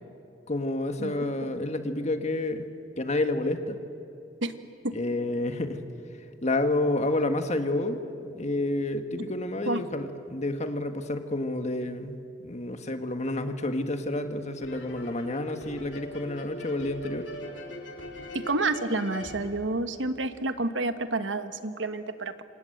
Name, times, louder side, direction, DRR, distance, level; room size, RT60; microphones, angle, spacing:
voice 1, 0.5-2.7 3.0-3.8 4.9-5.8 6.4-12.2 12.4-17.3, left 2 dB, 40° left, 7 dB, 1.7 m, -29 dB
voice 2, 1.0-1.3 4.4-4.5 4.8-4.9 9.7-9.8 18.3-22.4, right 2 dB, 80° right, 9 dB, 1.4 m, -29 dB
sound 1, 14.6-20.4, equal, 70° left, 3.5 m, -41 dB
27.0 x 26.5 x 8.0 m, 2.7 s
head